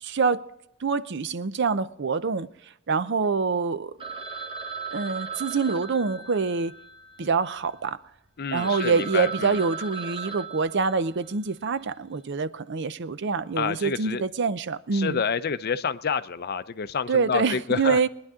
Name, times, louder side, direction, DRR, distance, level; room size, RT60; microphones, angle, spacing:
voice 1, 0.0-0.5 0.8-2.5 2.9-4.0 4.9-6.7 7.2-8.0 8.5-15.2 17.1-18.1, right 5 dB, 55° right, 0.6 m, -25 dB
Telephone, 4.0-7.8 8.3-8.4 8.6-11.4, right 5 dB, 25° right, 1.3 m, -38 dB
voice 2, 8.4-9.6 13.6-14.2 14.9-18.1, left 6 dB, 50° left, 0.6 m, -28 dB
23.0 x 10.5 x 3.7 m
head